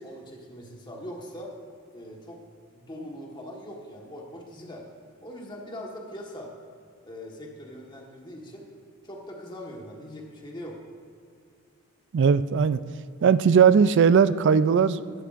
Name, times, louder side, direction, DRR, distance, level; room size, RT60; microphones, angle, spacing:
voice 1, 0.0-1.6 1.9-2.4 2.7-4.9 5.2-6.5 7.0-8.7 9.0-10.8, equal, 20° left, -1 dB, 1.4 m, -41 dB
voice 2, 12.1-12.8 13.2-15.2, right 6 dB, 55° right, 14 dB, 0.3 m, -19 dB
15.0 x 11.5 x 2.5 m, 2.2 s
head